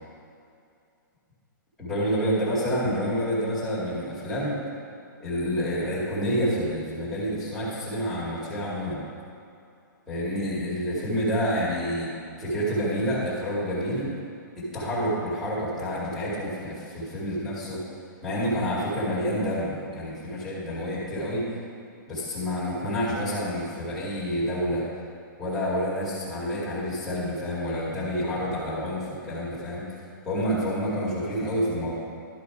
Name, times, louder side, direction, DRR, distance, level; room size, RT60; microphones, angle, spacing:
voice 1, 1.8-4.5 5.2-9.0 10.1-12.1 12.4-14.1 14.6-17.8 18.2-21.5 22.1-24.9 25.4-29.8 30.2-31.9, equal, 5° left, -11 dB, 2.3 m, -28 dB
11.5 x 4.9 x 4.7 m, 2.5 s
hypercardioid pair, 165°, 11 cm